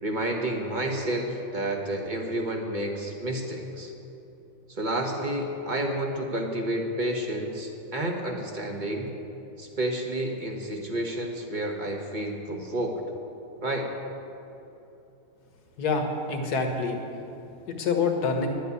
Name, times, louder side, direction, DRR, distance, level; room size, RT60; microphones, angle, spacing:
voice 1, 0.0-3.9 4.7-9.1 9.6-13.0 13.6-13.9, right 1 dB, 25° right, 2 dB, 1.3 m, -30 dB
voice 2, 15.8-17.0 17.7-18.5, left 4 dB, 50° left, 4 dB, 1.8 m, -26 dB
11.0 x 8.4 x 9.7 m, 2.9 s
omnidirectional pair, 2.2 m